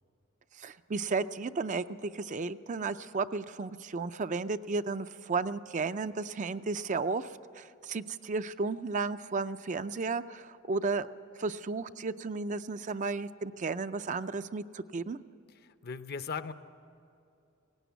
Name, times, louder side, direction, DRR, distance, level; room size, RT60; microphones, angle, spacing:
voice 1, 0.6-11.1 11.4-15.2, right 4 dB, 35° right, 11 dB, 0.4 m, -33 dB
voice 2, 15.6-16.5, left 5 dB, 50° left, 11 dB, 0.7 m, -38 dB
17.5 x 17.0 x 9.3 m, 2.5 s
head